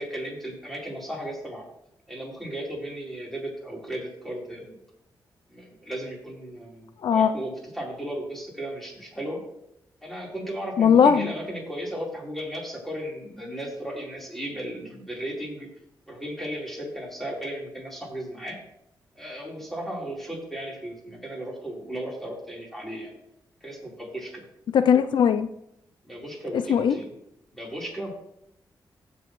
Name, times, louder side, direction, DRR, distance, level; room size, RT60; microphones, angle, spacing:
voice 1, 0.0-1.7 2.1-4.8 5.5-9.4 10.0-15.7 16.1-18.6 19.1-23.1 23.6-24.4 26.0-27.1 27.5-28.1, right 1 dB, 5° left, -3 dB, 3.9 m, -35 dB
voice 2, 10.8-11.3 24.7-25.5 26.7-26.9, left 7 dB, 75° left, 11 dB, 0.4 m, -18 dB
15.5 x 6.9 x 3.1 m, 0.79 s
wide cardioid pair, 120°, 8 cm